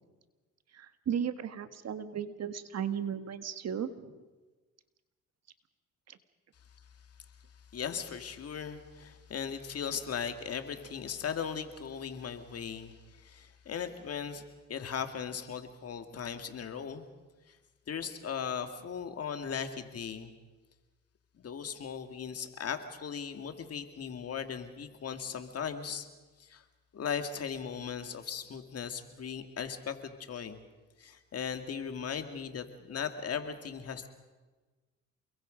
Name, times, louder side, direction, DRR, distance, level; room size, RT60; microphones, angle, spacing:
voice 1, 0.7-4.1 6.1-6.2, right 8 dB, 60° right, 11 dB, 1.5 m, -35 dB
voice 2, 7.7-14.4 14.7-17.1 17.5-17.6 17.9-20.3 21.4-26.1 26.4-26.6 26.9-30.6 31.0-34.1, left 7 dB, 55° left, 7 dB, 2.1 m, -38 dB
28.5 x 22.0 x 5.2 m, 1.3 s
cardioid pair, 90°, 30 cm